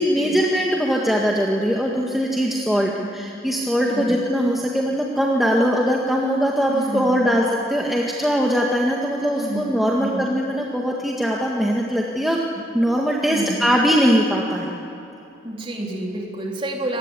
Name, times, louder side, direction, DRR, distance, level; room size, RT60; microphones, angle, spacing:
voice 1, 0.0-12.4 12.7-14.7, equal, ahead, -2 dB, 1.8 m, -21 dB
voice 2, 2.7-3.1 3.8-4.2 6.7-7.3 9.4-10.2 13.2-13.6 15.4-17.0, right 1 dB, 25° right, -1 dB, 4.0 m, -30 dB
26.0 x 20.0 x 8.4 m, 2.8 s
head